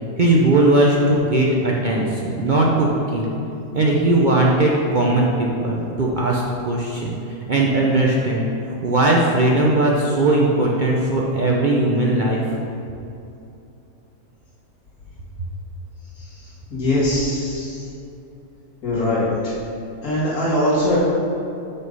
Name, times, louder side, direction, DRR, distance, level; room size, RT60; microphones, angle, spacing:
voice 1, 0.2-3.4 3.7-7.2 7.5-12.4, right 2 dB, 50° right, -3 dB, 0.6 m, -18 dB
voice 2, 16.7-17.8 18.8-19.5 20.0-21.0, left 1 dB, 70° left, -7 dB, 2.5 m, -21 dB
6.2 x 5.4 x 5.3 m, 2.7 s
omnidirectional pair, 1.6 m